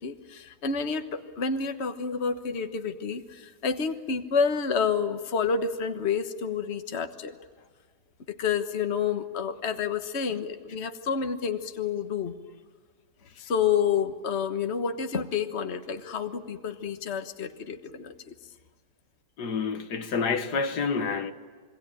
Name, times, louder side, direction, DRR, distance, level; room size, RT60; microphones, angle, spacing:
voice 1, 0.0-7.3 8.4-12.3 13.4-18.3, left 6 dB, 45° left, 1.5 m, -29 dB
voice 2, 19.4-21.3, left 5 dB, 80° left, 1.9 m, -28 dB
26.5 x 23.0 x 8.9 m
omnidirectional pair, 1.7 m